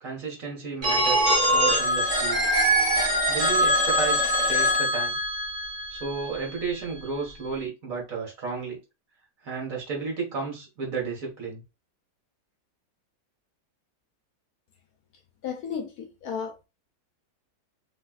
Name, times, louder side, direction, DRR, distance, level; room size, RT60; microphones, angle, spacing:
voice 1, 0.0-2.5 3.3-5.2 5.9-8.8 9.4-11.6, right 5 dB, 55° right, 1.7 m, -33 dB
Telephone, 0.8-6.6, equal, 25° right, 1.0 m, -23 dB
voice 2, 15.4-16.6, left 7 dB, 70° left, 0.9 m, -34 dB
3.2 x 3.1 x 2.3 m
omnidirectional pair, 1.8 m